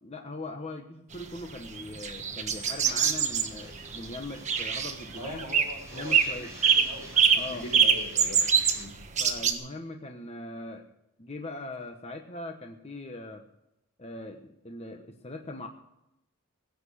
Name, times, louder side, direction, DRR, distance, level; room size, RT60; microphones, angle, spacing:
voice 1, 0.0-5.5 5.9-6.5 7.3-7.7 9.2-10.8 11.2-13.5 14.0-15.7, left 2 dB, 30° left, 4 dB, 1.2 m, -40 dB
sound 1, 1.2-9.5, right 7 dB, 30° right, 1.4 m, -24 dB
sound 2, 2.6-8.8, right 2 dB, 15° right, 5.1 m, -49 dB
voice 2, 5.2-6.4 6.8-8.4 8.7-8.9, equal, 80° left, 2 dB, 4.5 m, -41 dB
17.0 x 9.3 x 6.3 m, 0.83 s
head